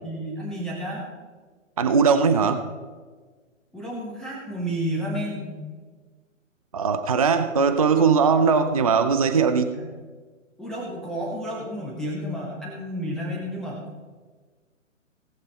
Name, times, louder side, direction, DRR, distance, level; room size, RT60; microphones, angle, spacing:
voice 1, 0.0-1.0 3.7-5.7 9.7-9.9 10.6-13.8, equal, ahead, -4 dB, 0.9 m, -31 dB
voice 2, 1.8-2.6 6.7-9.7, right 5 dB, 30° right, 8 dB, 0.5 m, -20 dB
18.0 x 6.8 x 4.1 m, 1.4 s
figure-of-eight pair, 135°, 39 cm